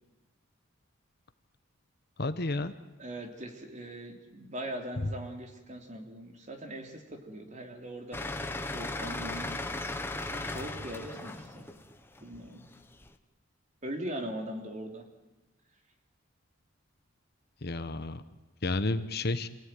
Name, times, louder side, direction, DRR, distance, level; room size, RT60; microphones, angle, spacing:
voice 1, 2.2-2.7 5.0-5.1 17.6-18.2 18.6-19.5, left 2 dB, 55° left, 11 dB, 1.1 m, -31 dB
voice 2, 3.0-9.6 10.3-11.7 12.2-12.7 13.8-15.0 19.0-19.1, right 1 dB, 35° right, 3 dB, 3.4 m, -41 dB
sound 1, 8.1-13.1, left 2 dB, 10° left, 1.1 m, -37 dB
27.5 x 16.5 x 9.4 m, 1.2 s
head